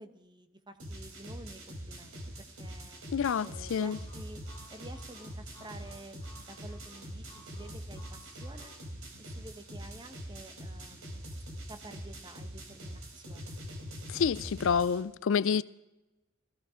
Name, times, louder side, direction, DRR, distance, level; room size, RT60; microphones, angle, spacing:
voice 1, 0.0-3.0 3.4-4.4 4.7-8.7 9.2-11.4 11.7-13.5 14.4-15.2, right 1 dB, 20° right, 1.1 m, -50 dB
sound 1, 0.8-15.0, equal, 75° right, 3.0 m, -44 dB
voice 2, 3.1-4.0 14.1-15.6, left 6 dB, 65° left, 0.4 m, -28 dB
Harmonica, 3.8-8.8, left 1 dB, 20° left, 3.0 m, -57 dB
16.0 x 15.0 x 5.0 m
head